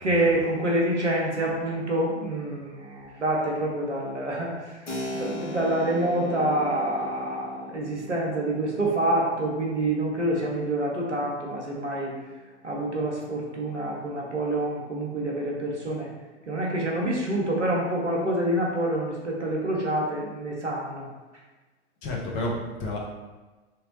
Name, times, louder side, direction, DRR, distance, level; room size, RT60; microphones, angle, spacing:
voice 1, 0.0-12.1 12.6-16.1 16.5-21.1, right 1 dB, 85° right, -2 dB, 0.9 m, -27 dB
Keyboard (musical), 4.9-13.2, left 1 dB, 90° left, 0.7 m, -40 dB
voice 2, 22.0-23.0, left 1 dB, 40° left, -2 dB, 0.9 m, -30 dB
3.3 x 2.9 x 3.1 m, 1.2 s
figure-of-eight pair, 90°, 35 cm